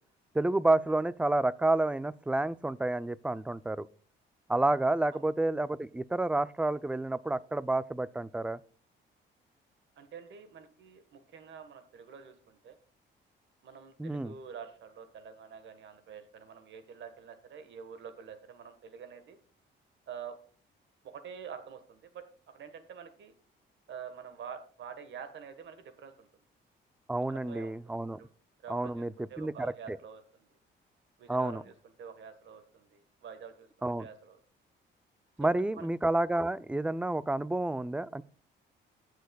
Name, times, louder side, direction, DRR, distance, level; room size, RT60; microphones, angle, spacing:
voice 1, 0.3-3.9 4.5-8.6 14.0-14.3 27.1-28.2 28.7-29.1 29.4-30.0 31.3-31.6 33.8-34.1 35.4-38.2, right 2 dB, 5° right, 0.4 m, -29 dB
voice 2, 10.0-12.8 13.6-19.4 20.1-20.3 21.0-22.2 22.5-23.3 23.9-26.3 27.3-28.3 28.6-30.5 31.2-33.7 34.0-34.4 35.4-35.5 35.8-35.9, right 7 dB, 70° right, 1.4 m, -47 dB
19.0 x 6.4 x 2.3 m
cardioid pair, 90°, 20 cm